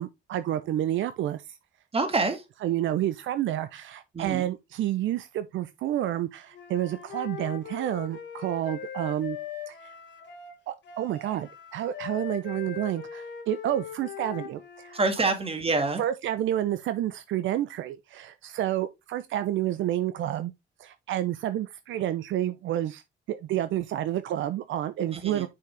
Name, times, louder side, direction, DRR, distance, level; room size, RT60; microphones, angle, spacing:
voice 1, 0.0-1.4 2.6-9.4 9.7-9.9 10.7-15.0 16.0-20.5 20.8-23.0 23.3-25.5, right 12 dB, 75° right, 0.6 m, -29 dB
voice 2, 1.9-2.4 4.1-4.5 14.9-16.0 25.1-25.5, right 3 dB, 30° right, 2.0 m, -26 dB
Wind instrument woodwind instrument, 6.5-15.1, left 8 dB, 65° left, 1.6 m, -40 dB
6.4 x 5.7 x 3.3 m
cardioid pair, 90°, 20 cm